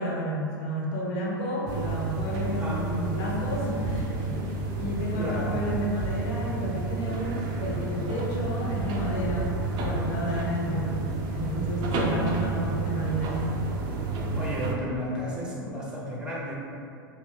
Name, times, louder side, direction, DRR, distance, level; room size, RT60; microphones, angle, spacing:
voice 1, 0.0-9.5 9.8-10.9 11.3-13.4, equal, 45° left, -3 dB, 0.9 m, -31 dB
sound 1, 1.7-14.7, right 3 dB, 40° right, 0.5 m, -30 dB
voice 2, 2.5-2.9 5.1-5.6 14.4-16.5, equal, 10° right, -5 dB, 0.8 m, -33 dB
3.0 x 2.6 x 3.5 m, 2.6 s
figure-of-eight pair, 95°, 12 cm